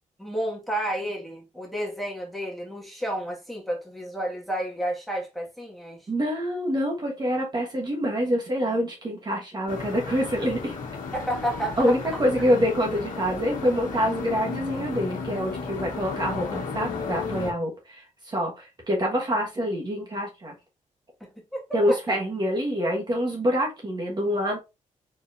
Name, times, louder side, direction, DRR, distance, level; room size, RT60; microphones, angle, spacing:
voice 1, 0.2-6.1 11.1-12.0 21.2-22.2, right 1 dB, ahead, 1.7 m, -31 dB
voice 2, 6.1-10.8 11.8-20.5 21.7-24.6, equal, 35° right, 1.4 m, -26 dB
sound 1, 9.7-17.5, left 4 dB, 90° left, 1.2 m, -34 dB
4.4 x 4.1 x 2.5 m
cardioid pair, 105°, 13 cm